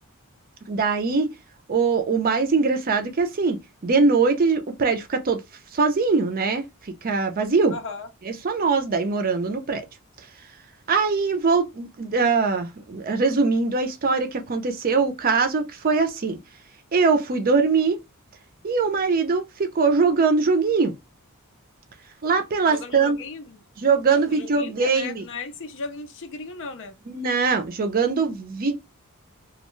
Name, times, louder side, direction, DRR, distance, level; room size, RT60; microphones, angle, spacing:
voice 1, 0.7-1.3 1.7-3.6 3.8-5.4 5.7-6.6 7.0-7.7 8.3-9.8 10.9-16.4 16.9-18.0 18.6-20.9 22.2-23.2 23.8-25.3 27.1-28.8, right 4 dB, 40° right, 0.5 m, -22 dB
voice 2, 7.7-8.1 22.7-23.6 24.1-27.0, left 3 dB, 60° left, 0.6 m, -36 dB
2.3 x 2.2 x 3.0 m
head